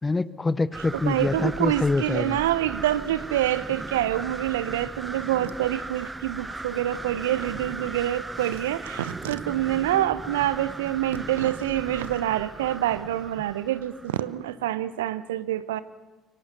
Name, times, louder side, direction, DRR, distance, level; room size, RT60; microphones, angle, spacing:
voice 1, 0.0-2.4, left 3 dB, 20° left, 18 dB, 1.0 m, -25 dB
sound 1, 0.7-14.3, right 2 dB, 15° right, 0.8 m, -38 dB
voice 2, 1.1-15.8, right 13 dB, 75° right, 16 dB, 0.8 m, -26 dB
26.0 x 23.5 x 6.9 m, 1.2 s
figure-of-eight pair, 55°, 0 cm